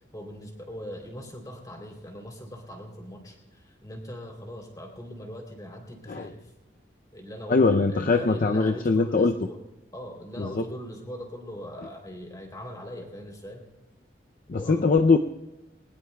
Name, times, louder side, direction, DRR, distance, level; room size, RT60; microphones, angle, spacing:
voice 1, 0.1-6.4 7.1-9.6 9.9-13.6 14.5-14.9, equal, 20° left, 2 dB, 3.2 m, -40 dB
voice 2, 7.5-9.3 10.4-10.6 14.5-15.2, left 4 dB, 45° left, 6 dB, 0.5 m, -22 dB
22.0 x 19.5 x 2.3 m, 1.0 s
head